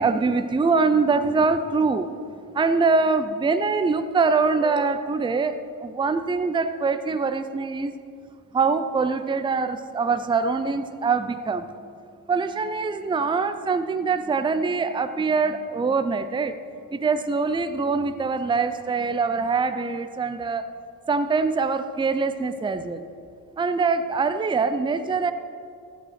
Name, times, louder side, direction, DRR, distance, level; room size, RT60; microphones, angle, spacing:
voice 1, 0.0-2.1 2.5-7.9 8.5-11.7 12.3-16.6 16.9-20.6 21.1-23.0 23.6-25.3, right 4 dB, 10° right, 10 dB, 0.5 m, -23 dB
14.5 x 5.4 x 5.8 m, 2.3 s
cardioid pair, 100°, 41 cm